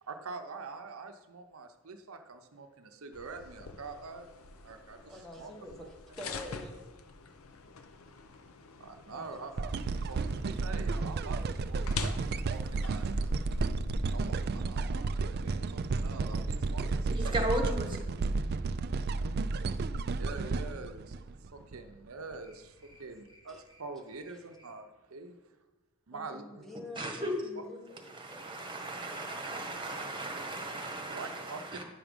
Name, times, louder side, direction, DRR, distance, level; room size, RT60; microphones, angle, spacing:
voice 1, 0.0-5.5 5.8-6.2 8.8-9.7 10.1-13.1 14.1-17.8 18.5-18.7 20.2-25.5 26.1-26.6 27.6-27.7 31.1-31.8, right 4 dB, 80° right, 6 dB, 0.7 m, -45 dB
sound 1, 3.1-13.7, left 3 dB, 80° left, 0.7 m, -45 dB
voice 2, 5.1-6.8 9.1-9.4 10.0-10.1 23.5-23.6 26.1-28.8, left 1 dB, ahead, 0 dB, 1.2 m, -47 dB
sound 2, 9.6-14.7, equal, 60° left, 2.0 m, -42 dB
sound 3, 9.6-21.8 22.3-22.4, right 3 dB, 50° right, 0.4 m, -32 dB
voice 3, 17.1-17.9 27.0-27.3 28.1-31.8, right 1 dB, 25° right, 3 dB, 1.4 m, -36 dB
9.9 x 6.1 x 5.2 m, 1.1 s
head